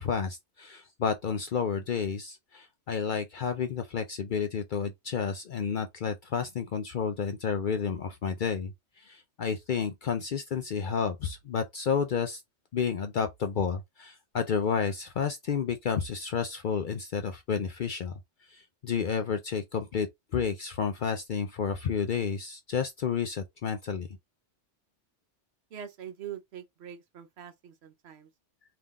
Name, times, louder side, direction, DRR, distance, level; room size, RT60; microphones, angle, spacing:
voice 1, 0.0-8.7 9.0-12.4 12.7-18.2 18.5-20.1 20.3-24.1, left 6 dB, 60° left, 0.5 m, -31 dB
voice 2, 25.7-28.3, right 9 dB, 65° right, 0.9 m, -43 dB
3.7 x 2.8 x 3.5 m
omnidirectional pair, 1.2 m